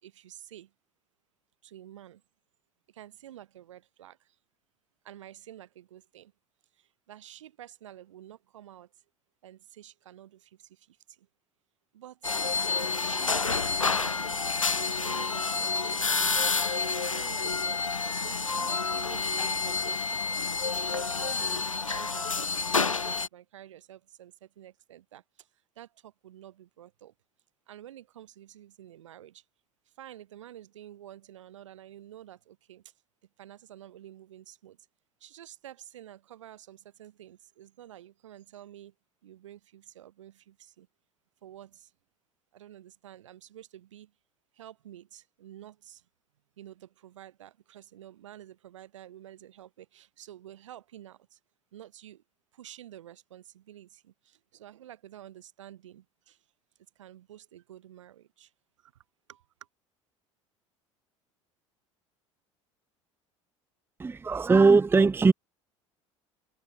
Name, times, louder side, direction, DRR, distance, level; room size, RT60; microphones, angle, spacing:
voice 1, 0.0-0.7 1.6-2.2 2.9-4.3 5.0-6.3 6.8-8.9 9.4-11.3 11.9-12.4 13.0-16.4 16.9-17.9 18.1-20.3 20.9-25.5 25.7-27.1 27.7-29.4 30.0-32.8 33.4-34.8 35.2-38.9 39.2-40.9 41.4-41.9 42.5-44.1 44.5-46.0 46.6-51.4 51.7-52.2 52.5-56.4 56.9-58.5 58.8-59.0 59.3-59.4, right 12 dB, 70° right, 5.0 m, -50 dB
sound 1, 12.2-23.3, left 4 dB, 90° left, 0.5 m, -29 dB
voice 2, 64.0-65.3, right 4 dB, 15° right, 0.7 m, -20 dB
figure-of-eight pair, 65°, 16 cm